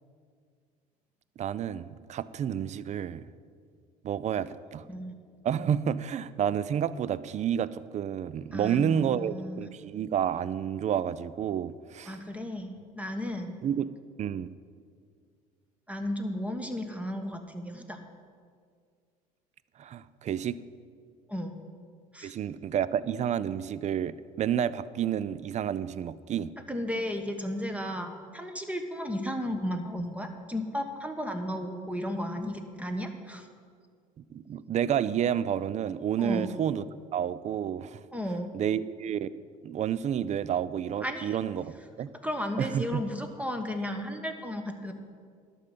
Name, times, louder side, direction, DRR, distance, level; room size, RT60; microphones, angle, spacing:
voice 1, 1.4-3.3 4.0-4.8 5.4-12.2 13.6-13.9 14.2-14.5 19.8-20.6 22.2-26.5 34.2-36.9 37.1-38.0 38.5-39.3 39.6-42.1 42.6-43.0, right 9 dB, 35° right, 17 dB, 0.4 m, -30 dB
voice 2, 8.5-9.7 12.1-13.6 15.9-18.0 21.3-21.6 22.1-22.3 26.7-33.5 36.2-36.5 38.1-38.7 41.0-41.4 42.2-44.9, equal, 5° right, 6 dB, 1.2 m, -34 dB
12.0 x 5.5 x 7.5 m, 2.1 s
hypercardioid pair, 65°, 19 cm